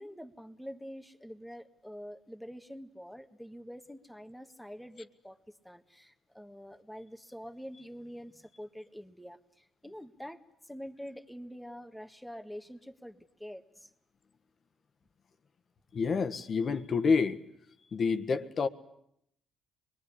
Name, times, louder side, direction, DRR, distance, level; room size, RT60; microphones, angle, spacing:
voice 1, 0.0-13.9, equal, 5° left, 1.6 m, -46 dB
voice 2, 15.9-17.4 17.9-18.7, left 5 dB, 50° left, 1.5 m, -28 dB
25.5 x 21.5 x 9.9 m
cardioid pair, 90°, 0 cm